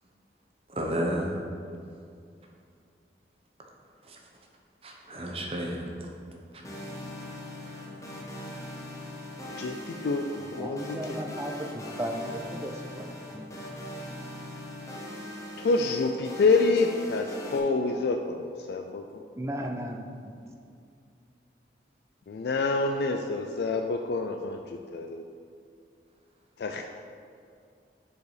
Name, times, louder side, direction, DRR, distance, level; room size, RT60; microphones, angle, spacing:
voice 1, 0.7-1.4 4.8-6.1, equal, 35° right, 0 dB, 0.9 m, -31 dB
sound 1, 6.6-17.6, left 1 dB, 20° left, 0.8 m, -40 dB
voice 2, 9.6-11.0 15.6-19.2 22.3-25.3 26.6-26.8, left 3 dB, 65° left, 4 dB, 0.3 m, -27 dB
voice 3, 10.6-13.5 19.4-20.3, equal, 15° right, 3 dB, 0.5 m, -36 dB
6.7 x 4.7 x 4.9 m, 2.4 s
head